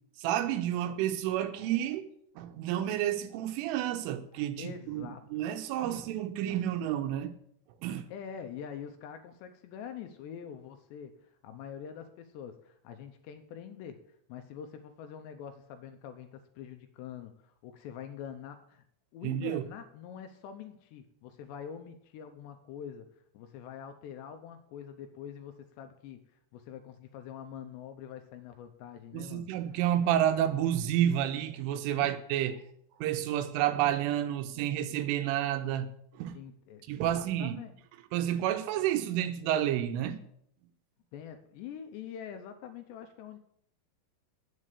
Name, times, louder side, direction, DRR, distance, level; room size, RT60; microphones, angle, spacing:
voice 1, 0.2-7.3 7.8-8.1 19.2-19.6 29.1-32.6 33.0-36.4 36.9-37.6 38.1-40.2, right 11 dB, 85° right, 3.5 m, -30 dB
voice 2, 4.6-5.2 5.8-6.1 8.1-14.0 14.3-18.8 19.1-23.1 23.3-26.2 26.5-29.5 32.0-32.1 36.3-37.7 41.1-43.4, left 8 dB, 75° left, 2.7 m, -45 dB
9.2 x 7.5 x 8.2 m
omnidirectional pair, 5.6 m